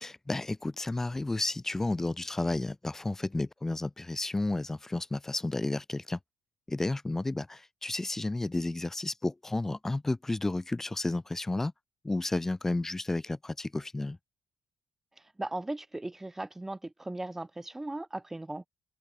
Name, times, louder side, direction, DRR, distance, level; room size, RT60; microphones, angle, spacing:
voice 1, 0.0-6.2 6.7-11.7 12.0-14.2, left 2 dB, 20° left, 1.1 m, -32 dB
voice 2, 15.4-18.7, right 2 dB, 15° right, 2.9 m, -37 dB
open air
hypercardioid pair, 45°, 2 cm